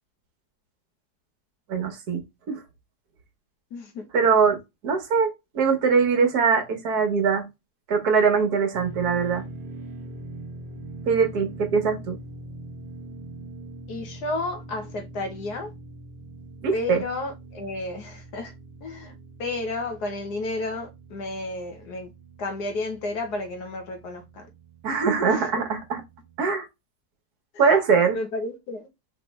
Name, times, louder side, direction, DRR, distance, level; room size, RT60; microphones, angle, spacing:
voice 1, 1.7-2.2 2.5-2.6 4.1-4.6 4.8-7.5 7.9-9.4 11.1-12.2 16.6-17.0 24.8-26.0 26.4-26.7 27.6-28.2, right 5 dB, 65° right, 1.6 m, -22 dB
voice 2, 3.7-4.1 13.9-15.7 16.7-18.5 18.8-19.1 19.4-22.1 22.4-24.2 25.3-25.6 27.5-27.7 28.1-28.8, left 2 dB, 75° left, 1.6 m, -32 dB
sound 1, 8.7-26.4, right 2 dB, 40° right, 0.8 m, -43 dB
5.0 x 3.3 x 3.2 m
omnidirectional pair, 1.8 m